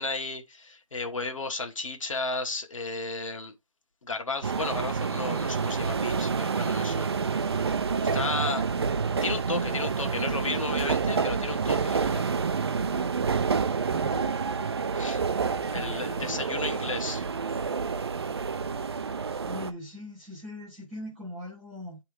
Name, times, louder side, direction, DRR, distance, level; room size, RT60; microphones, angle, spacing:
voice 1, 0.0-3.5 4.0-7.1 7.4-7.7 8.1-8.6 9.2-12.2 14.9-15.2 15.7-17.2, left 3 dB, 80° left, 1.4 m, -33 dB
sound 1, 4.4-19.7, right 5 dB, 50° right, 0.5 m, -28 dB
voice 2, 13.8-14.4 15.7-16.4 19.5-22.0, equal, 5° right, 0.5 m, -40 dB
10.0 x 3.4 x 3.1 m
hypercardioid pair, 170°, 17 cm